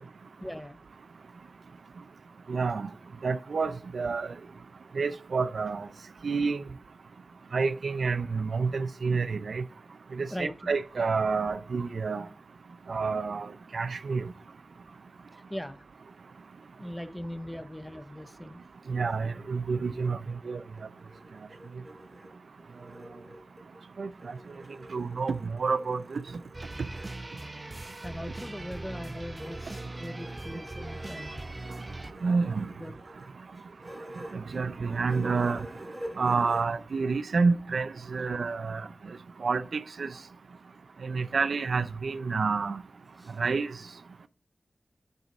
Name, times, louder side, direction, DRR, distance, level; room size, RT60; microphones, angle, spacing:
voice 1, 0.4-0.8 10.3-10.7 15.3-15.8 16.8-18.6 22.6-22.7 28.0-31.4 32.3-32.5 32.8-33.0 33.6-33.7 34.5-34.6 43.1-43.4, equal, 10° left, 0.7 m, -40 dB
voice 2, 2.5-2.9 3.2-4.3 5.0-5.9 6.2-6.6 7.5-9.6 10.1-12.3 12.9-14.3 18.9-20.2 20.5-20.6 24.0-24.1 24.9-26.2 32.2-32.7 34.3-35.7 36.2-38.8 39.4-40.1 41.0-42.8 43.4-43.7, right 4 dB, 75° right, 0.4 m, -28 dB
sound 1, 20.8-23.8 24.2-27.1 28.1-36.6, equal, 10° right, 2.9 m, -47 dB
sound 2, 26.5-32.1, right 2 dB, 30° right, 0.7 m, -40 dB
8.0 x 4.0 x 6.3 m
cardioid pair, 45°, 0 cm